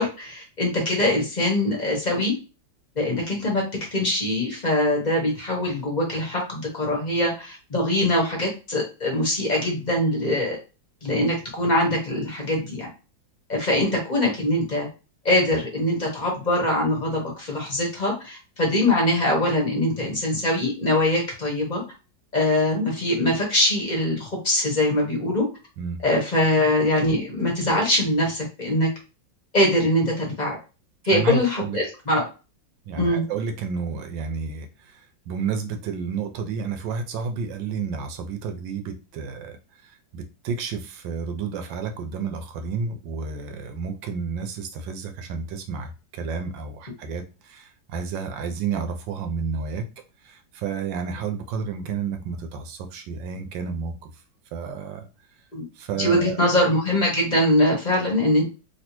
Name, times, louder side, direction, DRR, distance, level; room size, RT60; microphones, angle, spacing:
voice 1, 0.0-2.3 3.0-3.6 3.9-10.6 11.0-12.9 13.5-14.9 15.2-21.8 22.3-25.4 26.0-28.9 29.5-30.6 31.0-32.2 33.0-33.2 55.5-55.7 55.9-58.4, left 1 dB, 35° left, -1 dB, 0.7 m, -23 dB
voice 2, 31.1-31.8 32.9-39.6 39.8-49.8 50.2-54.0 54.5-55.1 55.7-56.4, right 5 dB, 80° right, 6 dB, 1.3 m, -31 dB
3.2 x 2.6 x 2.9 m, 0.32 s
omnidirectional pair, 2.0 m